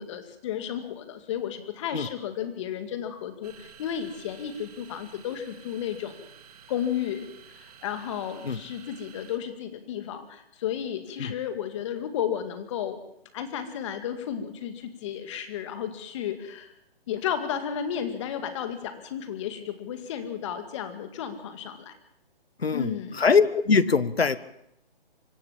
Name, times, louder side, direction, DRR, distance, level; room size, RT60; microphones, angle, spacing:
voice 1, 0.0-6.3 6.7-13.0 13.3-16.7 17.1-22.0 22.7-23.3, left 9 dB, 30° left, 9 dB, 2.2 m, -33 dB
sound 1, 3.4-9.4, right 8 dB, 40° right, 2.1 m, -51 dB
voice 2, 22.6-24.4, left 5 dB, 90° left, 16 dB, 1.4 m, -22 dB
25.0 x 15.0 x 7.4 m, 0.78 s
hypercardioid pair, 150°, 30 cm